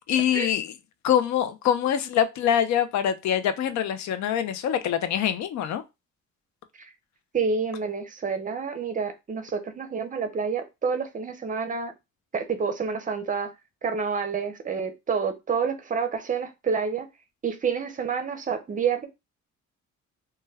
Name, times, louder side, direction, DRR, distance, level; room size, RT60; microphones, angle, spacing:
voice 1, 0.1-0.7 1.0-5.8, left 9 dB, 65° left, 0.5 m, -24 dB
voice 2, 7.3-11.9 12.3-13.5 13.8-17.1 17.4-19.1, right 5 dB, 25° right, 0.5 m, -28 dB
2.2 x 2.1 x 3.3 m
cardioid pair, 90°, 30 cm